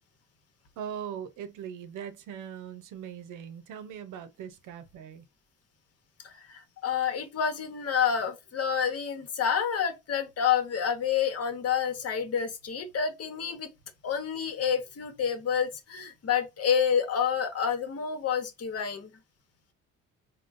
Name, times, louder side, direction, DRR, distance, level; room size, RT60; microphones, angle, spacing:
voice 1, 0.8-5.2, right 8 dB, 85° right, 0.7 m, -40 dB
voice 2, 6.2-13.7 14.0-19.1, left 7 dB, 50° left, 1.0 m, -28 dB
3.6 x 2.2 x 2.5 m
cardioid pair, 90°, 30 cm